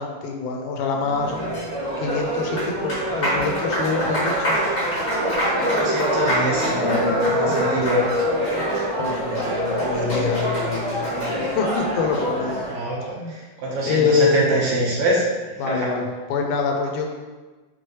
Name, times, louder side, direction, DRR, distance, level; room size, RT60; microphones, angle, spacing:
voice 1, 0.0-1.4 2.0-4.6 6.6-7.6 9.0-12.6 13.1-13.4 13.9-14.4 15.6-17.1, left 5 dB, 80° left, 2 dB, 2.2 m, -25 dB
Applause, 1.0-12.8, equal, 50° left, 0.5 m, -24 dB
voice 2, 5.5-8.1 12.7-15.2 15.7-15.9, right 1 dB, 65° right, -4 dB, 2.4 m, -25 dB
6.1 x 4.9 x 3.1 m, 1.3 s
omnidirectional pair, 3.6 m